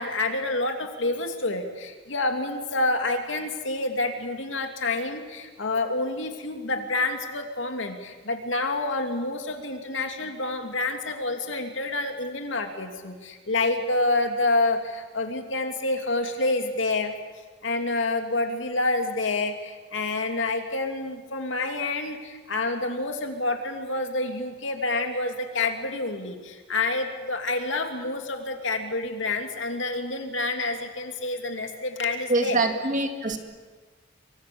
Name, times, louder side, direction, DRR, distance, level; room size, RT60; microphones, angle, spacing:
voice 1, 0.0-17.1 17.6-32.6, left 2 dB, 70° left, 5 dB, 2.8 m, -28 dB
voice 2, 32.3-33.4, right 2 dB, 40° right, 5 dB, 2.3 m, -24 dB
27.0 x 24.0 x 7.1 m, 1.4 s
head